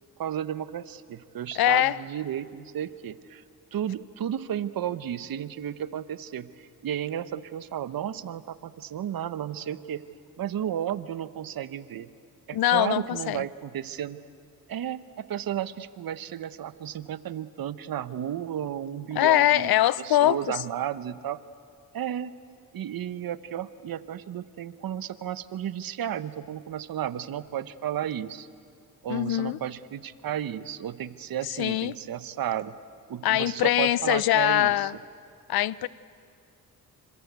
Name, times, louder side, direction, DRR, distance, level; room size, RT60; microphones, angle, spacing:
voice 1, 0.2-3.4 3.7-10.0 10.4-12.1 12.5-14.2 14.7-21.4 21.9-22.4 22.7-28.5 29.0-32.8 33.1-34.9, right 10 dB, 70° right, 14 dB, 1.0 m, -33 dB
voice 2, 1.5-2.0 12.5-13.5 19.1-20.6 29.1-29.6 31.4-31.9 33.2-34.9 35.5-35.9, left 13 dB, 80° left, 19 dB, 0.7 m, -23 dB
27.5 x 26.0 x 8.2 m, 2.3 s
cardioid pair, 75°, 36 cm